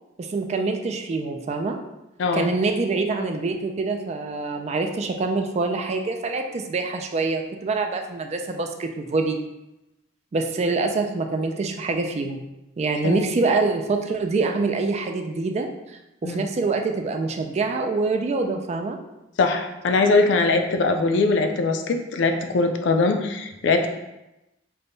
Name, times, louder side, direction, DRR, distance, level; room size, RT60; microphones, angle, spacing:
voice 1, 0.2-1.8 2.3-9.4 10.3-12.4 12.8-15.7 16.2-19.0, right 3 dB, 35° right, 4 dB, 0.3 m, -25 dB
voice 2, 19.4-23.9, left 3 dB, 70° left, 6 dB, 0.4 m, -21 dB
3.4 x 2.2 x 3.8 m, 0.95 s
head